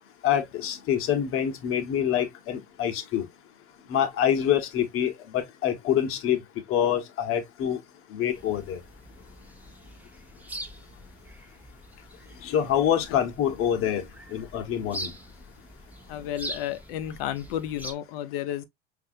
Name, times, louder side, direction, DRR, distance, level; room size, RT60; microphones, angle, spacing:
voice 1, 0.2-3.3 3.9-6.4 6.7-7.8 8.1-8.8 12.4-14.0 14.3-15.1, left 9 dB, 40° left, 1.1 m, -26 dB
sound 1, 8.3-17.9, right 1 dB, 5° right, 0.7 m, -43 dB
voice 2, 16.1-18.6, left 11 dB, 60° left, 0.8 m, -32 dB
5.3 x 2.7 x 2.5 m
hypercardioid pair, 85°, 33 cm